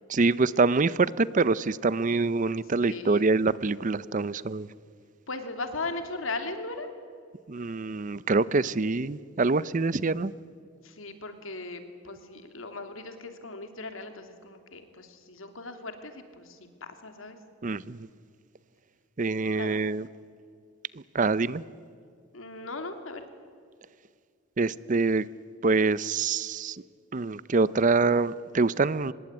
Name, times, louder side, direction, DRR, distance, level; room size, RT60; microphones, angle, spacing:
voice 1, 0.1-4.7 7.5-10.3 17.6-18.1 19.2-20.1 20.9-21.6 24.6-25.3 25.6-26.8 27.1-29.1, right 3 dB, 40° right, 0.6 m, -25 dB
voice 2, 2.8-3.3 5.3-6.9 8.6-8.7 10.8-16.6 17.0-17.4 19.6-19.9 22.3-23.2, left 3 dB, 80° left, 2.8 m, -38 dB
24.5 x 20.5 x 9.6 m
head